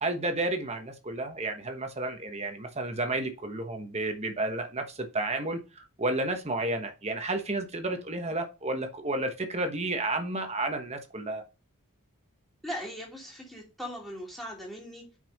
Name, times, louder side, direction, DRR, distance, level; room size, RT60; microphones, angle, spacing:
voice 1, 0.0-11.4, right 2 dB, 30° right, 1.2 m, -31 dB
voice 2, 12.6-15.2, equal, ahead, 2.7 m, -39 dB
5.8 x 5.6 x 5.4 m
head